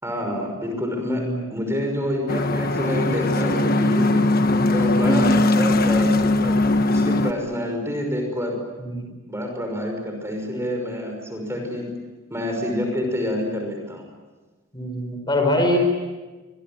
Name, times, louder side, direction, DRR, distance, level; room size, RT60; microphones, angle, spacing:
voice 1, 0.0-4.3 4.7-6.6 6.9-8.6 9.3-11.9 12.3-14.1, left 1 dB, 10° right, 3 dB, 5.7 m, -27 dB
Ambiente - puerto olas en el pantalan, 2.3-7.3, left 2 dB, 45° left, 1.4 m, -20 dB
voice 2, 5.0-5.3 8.8-9.1 11.6-11.7 14.7-15.8, equal, 20° left, 3 dB, 5.1 m, -24 dB
27.0 x 24.0 x 8.9 m, 1.3 s
head